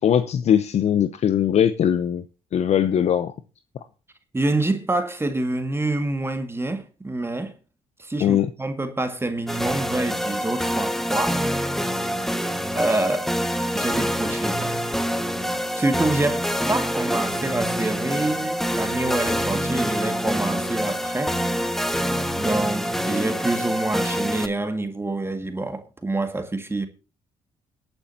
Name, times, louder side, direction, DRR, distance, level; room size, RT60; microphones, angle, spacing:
voice 1, 0.0-2.2 2.5-3.3 8.2-8.5, left 9 dB, 60° left, 0.7 m, -20 dB
voice 2, 4.3-7.5 8.0-11.4 12.7-13.3 13.7-14.8 15.7-21.4 22.4-26.9, right 2 dB, 20° right, 1.9 m, -26 dB
sound 1, 9.5-24.5, equal, 5° left, 1.5 m, -26 dB
22.5 x 9.0 x 2.8 m
supercardioid pair, 60°, 13 cm